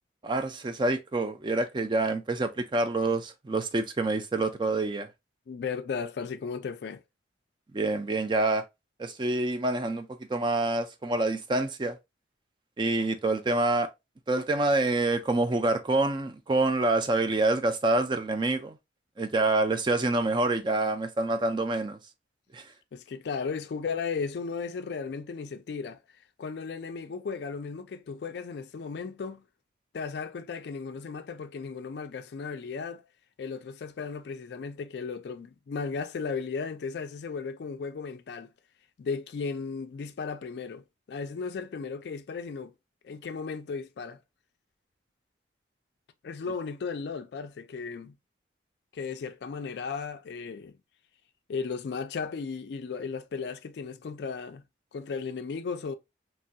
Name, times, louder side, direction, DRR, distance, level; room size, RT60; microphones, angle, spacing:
voice 1, 0.2-5.1 7.7-8.6 9.0-12.0 12.8-13.9 14.3-18.8 19.2-22.0 22.5-22.6, right 2 dB, 25° right, 0.3 m, -27 dB
voice 2, 5.5-7.0 22.9-26.0 26.4-29.4 29.9-33.0 33.4-38.5 39.0-42.7 43.0-44.2 46.2-48.1 48.9-50.8 51.5-54.6 54.9-55.9, left 5 dB, 60° left, 0.3 m, -35 dB
3.0 x 2.2 x 2.6 m
head